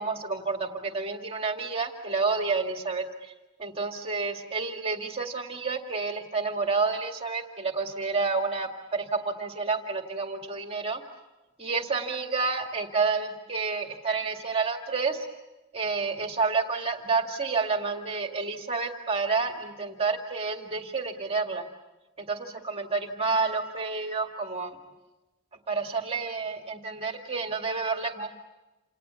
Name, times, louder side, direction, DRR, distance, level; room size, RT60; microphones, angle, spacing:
voice 1, 0.0-3.3 3.6-11.0 11.6-15.3 15.7-21.6 22.2-24.8 25.7-28.3, right 4 dB, 30° right, 3 dB, 2.2 m, -29 dB
28.5 x 28.5 x 7.1 m, 1.1 s
head